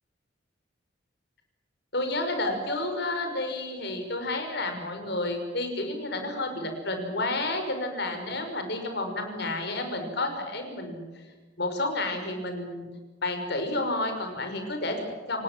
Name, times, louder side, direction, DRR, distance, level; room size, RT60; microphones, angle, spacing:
voice 1, 1.9-11.0 11.6-12.8 13.2-15.4, left 2 dB, 60° left, 5 dB, 5.8 m, -30 dB
29.0 x 18.5 x 7.7 m, 1.3 s
head